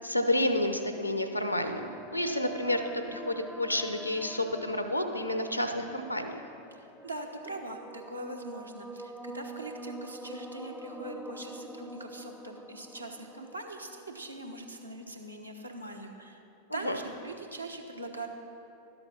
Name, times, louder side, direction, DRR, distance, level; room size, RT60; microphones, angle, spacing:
voice 1, 0.0-6.4 16.7-17.0, left 1 dB, 90° left, 7 dB, 0.8 m, -30 dB
sound 1, 1.4-15.0, right 1 dB, ahead, 0.5 m, -46 dB
voice 2, 6.7-16.4 16.7-18.3, right 2 dB, 85° right, 2 dB, 1.1 m, -42 dB
12.0 x 7.9 x 5.8 m, 2.7 s
figure-of-eight pair, 90°, 0 cm